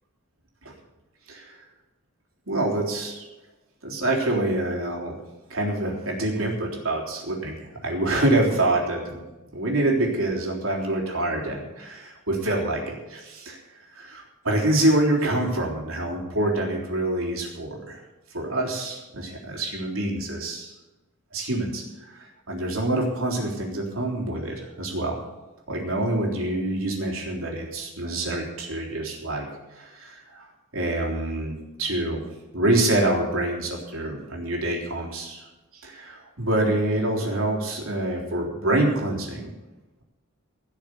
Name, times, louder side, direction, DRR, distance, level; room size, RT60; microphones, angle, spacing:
voice 1, 1.3-1.6 2.5-3.3 3.8-5.2 5.5-9.2 9.5-13.6 13.9-18.0 18.3-20.7 21.3-25.2 25.7-30.5 30.7-32.2 32.5-35.5 35.8-39.5, right 1 dB, 70° right, -1 dB, 3.6 m, -26 dB
17.0 x 6.5 x 8.3 m, 1.1 s
head